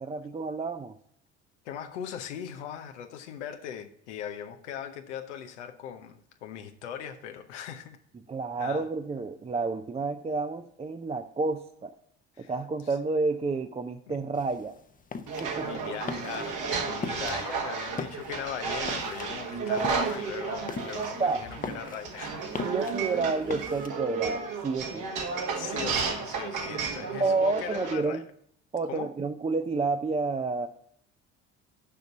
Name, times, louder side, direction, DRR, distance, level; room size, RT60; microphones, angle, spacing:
voice 1, 0.0-1.0 8.3-11.9 12.4-14.7 15.4-15.8 17.2-17.4 21.2-21.4 22.6-25.0 27.2-28.2 28.7-30.7, right 3 dB, 20° right, 0.5 m, -30 dB
voice 2, 1.6-8.0 8.6-8.9 12.4-12.5 14.1-14.2 15.6-22.6 25.5-28.2 28.9-29.1, left 9 dB, 90° left, 0.8 m, -39 dB
sound 1, 14.3-23.9, left 5 dB, 25° left, 0.7 m, -40 dB
sound 2, 15.3-27.9, right 5 dB, 65° right, 1.6 m, -33 dB
6.7 x 5.2 x 6.6 m
hypercardioid pair, 60°, 34 cm